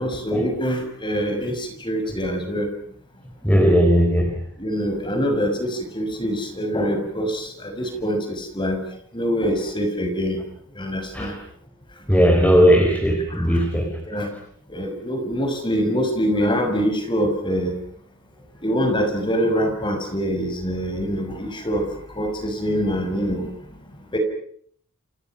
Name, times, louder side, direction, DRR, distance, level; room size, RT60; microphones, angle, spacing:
voice 1, 0.0-2.7 4.6-8.9 9.1-10.4 10.8-11.4 13.3-13.6 14.1-14.3 14.7-17.7 18.6-21.9 22.2-23.5 24.1-24.2, equal, 20° left, 5 dB, 6.0 m, -24 dB
voice 2, 3.4-4.4 11.1-11.3 12.1-14.0, equal, 5° left, 2 dB, 4.3 m, -17 dB
29.5 x 28.0 x 5.9 m, 0.63 s
head